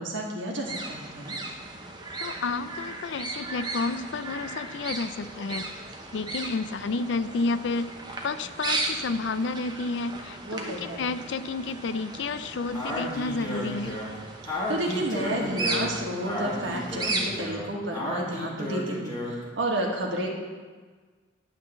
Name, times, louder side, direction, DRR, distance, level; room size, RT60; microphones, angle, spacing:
voice 1, 0.0-1.4 10.4-11.1 14.7-20.3, right 1 dB, 65° right, -1 dB, 1.6 m, -31 dB
sound 1, 0.6-17.5, right 2 dB, 20° right, 0.8 m, -36 dB
voice 2, 2.2-5.7 6.1-7.9 8.2-14.0, left 3 dB, 60° left, 13 dB, 0.4 m, -30 dB
Speech, 12.7-19.5, left 1 dB, 20° left, 1.7 m, -33 dB
11.0 x 3.8 x 7.3 m, 1.4 s
head